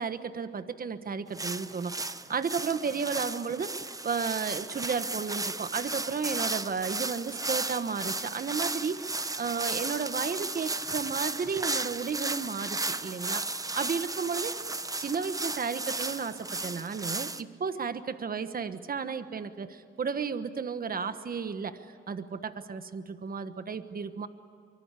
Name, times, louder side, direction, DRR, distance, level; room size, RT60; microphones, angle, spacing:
voice 1, 0.0-14.5 15.0-24.3, right 5 dB, 45° right, 11 dB, 1.3 m, -33 dB
sound 1, 1.3-17.4, right 2 dB, 15° right, 0.9 m, -34 dB
25.0 x 24.5 x 8.3 m, 2.5 s
cardioid pair, 100°, 21 cm